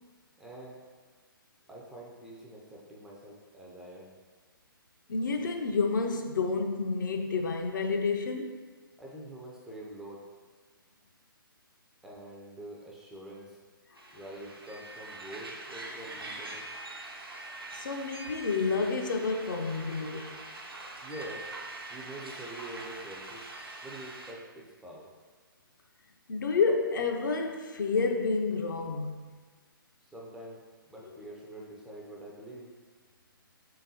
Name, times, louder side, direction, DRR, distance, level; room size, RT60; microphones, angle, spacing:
voice 1, 0.4-0.8 1.7-4.1 9.0-10.2 12.0-13.6 14.1-16.6 21.0-21.5 21.9-23.4 23.8-25.1 30.0-30.6 30.9-32.7, right 1 dB, 5° right, -4 dB, 0.3 m, -45 dB
voice 2, 5.1-8.6 17.7-20.4 26.3-29.3, left 4 dB, 60° left, 4 dB, 0.4 m, -29 dB
sound 1, 14.0-24.3, right 2 dB, 85° right, 0.6 m, -43 dB
3.8 x 3.5 x 2.7 m, 1.4 s
figure-of-eight pair, 130°, 12 cm